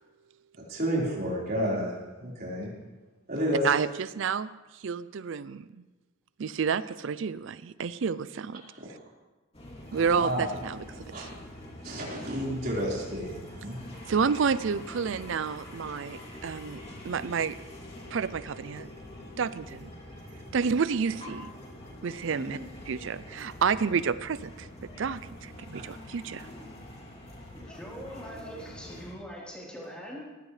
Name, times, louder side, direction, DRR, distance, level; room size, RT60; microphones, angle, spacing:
voice 1, 0.7-2.7 3.3-3.6 9.9-10.6 11.1-11.3 11.8-13.8 25.7-25.8, equal, 45° right, -4 dB, 4.5 m, -31 dB
voice 2, 3.6-4.5 4.8-5.6 6.4-8.6 9.9-10.8 11.2-11.3 14.1-17.5 18.1-18.9 19.4-19.9 20.5-21.5 22.0-22.6 22.9-24.7 25.0-26.5, right 6 dB, 65° right, 15 dB, 0.4 m, -29 dB
sound 1, 9.5-29.1, left 1 dB, 30° left, 2.9 m, -45 dB
voice 3, 22.3-22.8 27.5-30.2, equal, 5° left, -5 dB, 3.8 m, -42 dB
19.5 x 16.0 x 3.3 m, 1.2 s
head